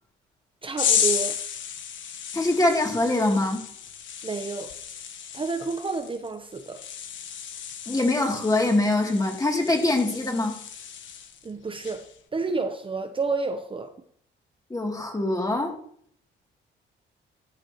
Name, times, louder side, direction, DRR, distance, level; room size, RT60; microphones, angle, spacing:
voice 1, 0.6-1.4 4.2-4.7 5.3-6.8 11.4-12.0 12.3-13.9, right 4 dB, 25° right, 6 dB, 0.9 m, -30 dB
sound 1, 0.8-11.5 11.8-12.2, left 8 dB, 70° left, 1.5 m, -33 dB
voice 2, 2.3-3.6 7.9-10.5 14.7-15.7, left 2 dB, 20° left, 1 dB, 3.0 m, -23 dB
14.5 x 10.0 x 3.1 m, 0.63 s
cardioid pair, 90°, 20 cm